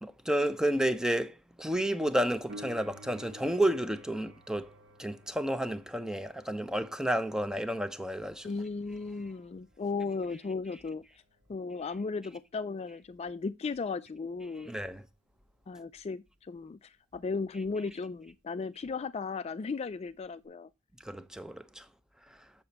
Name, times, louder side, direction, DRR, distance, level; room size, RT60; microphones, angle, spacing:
voice 1, 0.0-4.7 5.0-8.5 14.7-15.0 21.0-21.8, right 1 dB, 5° right, 0.7 m, -31 dB
Piano, 2.5-12.9 20.4-20.5, equal, 60° right, 2.2 m, -54 dB
voice 2, 8.4-11.0 11.5-14.7 15.7-20.7, left 4 dB, 35° left, 0.3 m, -36 dB
6.9 x 6.9 x 4.1 m
head